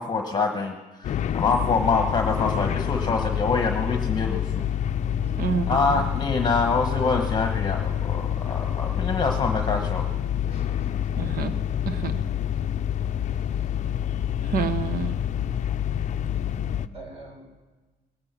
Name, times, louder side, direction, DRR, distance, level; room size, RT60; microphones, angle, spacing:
voice 1, 0.0-4.6 5.7-10.0 16.4-16.5, left 4 dB, 25° left, 4 dB, 1.1 m, -25 dB
sound 1, 1.0-16.9, left 10 dB, 45° left, 0.5 m, -27 dB
voice 2, 1.2-1.6 5.2-5.6 10.5-11.1 12.3-12.4 13.4-13.7 14.2-14.5 16.9-17.4, right 1 dB, 35° right, 2 dB, 3.9 m, -46 dB
voice 3, 5.4-6.0 11.2-11.5 11.8-12.2 14.4-15.2, right 6 dB, 60° right, 11 dB, 1.1 m, -28 dB
20.0 x 8.8 x 5.9 m, 1.3 s
cardioid pair, 110°, 17 cm